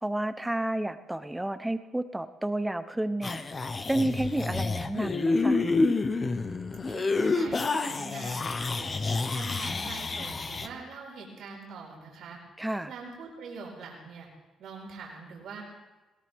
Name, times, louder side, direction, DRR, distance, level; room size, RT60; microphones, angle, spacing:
voice 1, 0.0-5.6 12.6-12.9, right 1 dB, 10° right, 11 dB, 0.9 m, -31 dB
sound 1, 3.2-10.7, left 3 dB, 35° left, 1.1 m, -28 dB
voice 2, 6.9-9.0 9.3-12.4 12.9-14.3 14.6-15.6, right 4 dB, 75° right, -2 dB, 4.8 m, -43 dB
21.0 x 18.0 x 3.6 m, 1.1 s
cardioid pair, 90°, 0 cm